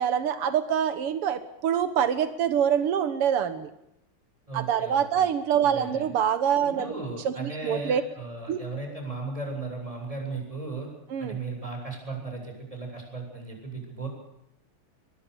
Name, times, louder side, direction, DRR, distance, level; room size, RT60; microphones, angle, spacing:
voice 1, 0.0-3.7 4.5-6.9 7.2-8.0 8.5-8.6 11.1-11.4, right 8 dB, 85° right, 12 dB, 2.3 m, -25 dB
voice 2, 4.5-5.2 5.6-6.1 6.6-10.9 11.2-14.1, right 3 dB, 15° right, 2 dB, 8.1 m, -36 dB
23.5 x 22.0 x 6.9 m, 0.81 s
omnidirectional pair, 2.4 m